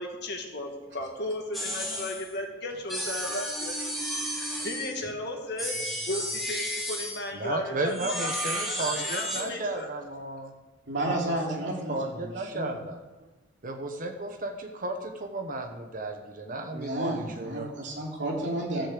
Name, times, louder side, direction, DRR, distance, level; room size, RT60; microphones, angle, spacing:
voice 1, 0.0-3.8 4.3-5.8 6.1-10.0 16.8-16.9, left 1 dB, 60° left, 2 dB, 2.0 m, -35 dB
sound 1, 1.5-2.3 2.9-5.0 5.6-7.3 7.9-9.5, equal, ahead, 2.6 m, -33 dB
voice 2, 7.3-10.5 11.1-11.6 11.9-13.3 13.6-17.7, right 2 dB, 45° right, 5 dB, 1.1 m, -34 dB
voice 3, 10.9-12.7 16.7-18.9, right 1 dB, 65° right, -1 dB, 3.0 m, -32 dB
14.0 x 6.5 x 7.6 m, 1.2 s
head